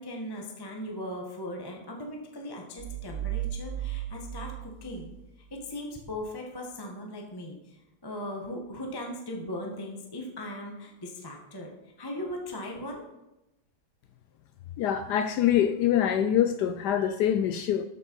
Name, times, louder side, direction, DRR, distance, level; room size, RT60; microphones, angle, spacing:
voice 1, 0.0-5.1 5.5-11.7 12.0-13.0, left 1 dB, 15° left, 1.1 m, -38 dB
sound 1, 2.8-5.7, right 12 dB, 55° right, 0.8 m, -36 dB
voice 2, 14.8-17.8, left 10 dB, 80° left, 0.9 m, -25 dB
13.0 x 6.1 x 4.6 m
omnidirectional pair, 2.3 m